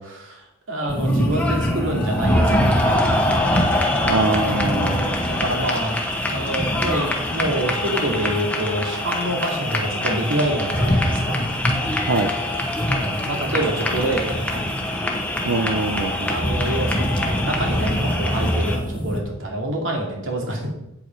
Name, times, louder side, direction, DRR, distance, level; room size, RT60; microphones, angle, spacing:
voice 1, 0.0-3.7 4.6-6.0 6.2-11.6 12.9-14.6 16.2-20.7, right 1 dB, 70° right, 0 dB, 2.6 m, -27 dB
sound 1, 0.8-18.8, left 1 dB, 5° left, 1.0 m, -26 dB
sound 2, 0.9-19.2, equal, 25° left, 1.2 m, -26 dB
voice 2, 4.0-5.2 12.1-12.3 15.4-16.4, right 3 dB, 90° right, 5 dB, 0.7 m, -23 dB
8.6 x 8.1 x 4.6 m, 0.86 s
head